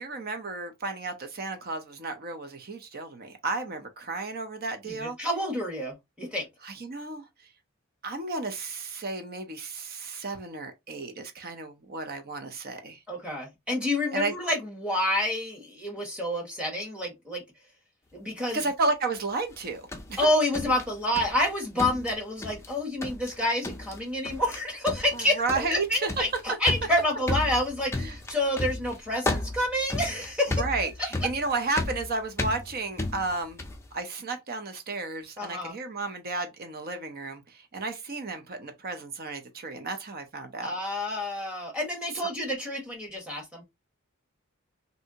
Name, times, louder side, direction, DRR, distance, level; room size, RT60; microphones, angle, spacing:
voice 1, 0.0-5.2 6.6-7.3 8.0-13.0 14.1-14.3 18.5-20.3 25.1-26.1 28.0-28.2 30.6-33.6 33.9-40.8, right 3 dB, 45° right, 0.6 m, -33 dB
voice 2, 4.8-6.5 13.1-17.4 18.1-18.6 20.2-25.4 25.7-30.6 35.4-35.7 40.6-43.6, left 1 dB, 5° right, 1.3 m, -28 dB
sound 1, 19.5-21.5 21.8-22.7 23.0-23.4 23.6-24.0 24.2-24.6 24.9-33.9, left 2 dB, 10° left, 0.4 m, -33 dB
3.3 x 2.7 x 2.7 m
head